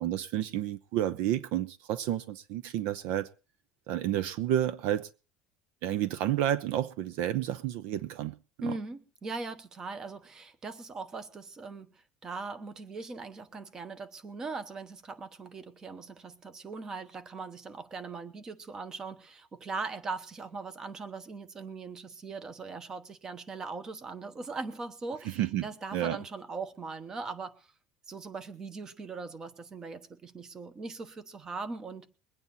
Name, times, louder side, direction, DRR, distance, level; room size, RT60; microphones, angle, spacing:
voice 1, 0.0-3.3 3.9-5.1 5.8-8.4 8.6-8.7 25.4-26.2, right 12 dB, 65° right, 0.7 m, -30 dB
voice 2, 8.6-27.7 28.1-32.1, right 4 dB, 20° right, 1.0 m, -40 dB
22.0 x 9.1 x 4.1 m
cardioid pair, 170°, 3 cm